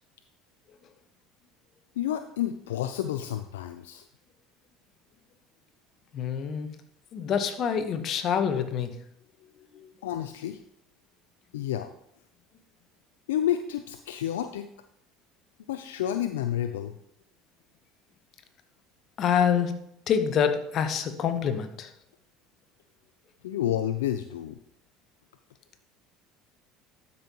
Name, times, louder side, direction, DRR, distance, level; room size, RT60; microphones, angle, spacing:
voice 1, 2.0-4.0 10.0-10.6 11.5-11.9 13.3-14.7 15.7-16.9 23.4-24.6, left 11 dB, 85° left, 9 dB, 0.3 m, -30 dB
voice 2, 6.1-6.7 7.1-8.9 9.7-9.9 19.2-21.9, left 7 dB, 50° left, 9 dB, 0.9 m, -26 dB
12.0 x 5.5 x 2.9 m, 0.72 s
hypercardioid pair, 75°, 0 cm